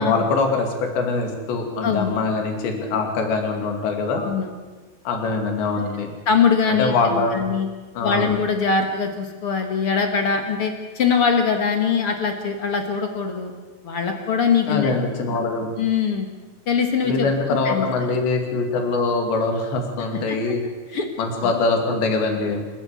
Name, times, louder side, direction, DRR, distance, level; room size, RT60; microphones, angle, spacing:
voice 1, 0.0-4.2 5.1-6.1 6.7-7.4 7.9-8.3 14.7-15.7 17.0-20.7 21.2-22.6, left 3 dB, 90° left, 4 dB, 4.7 m, -23 dB
voice 2, 1.8-2.2 4.1-4.5 6.2-6.9 7.3-7.7 8.0-13.5 13.8-14.9 15.8-16.3 16.7-17.9 20.1-20.4 20.9-21.1 21.4-21.6, left 6 dB, 50° left, 5 dB, 1.7 m, -22 dB
29.0 x 11.5 x 8.4 m, 1.3 s
omnidirectional pair, 4.9 m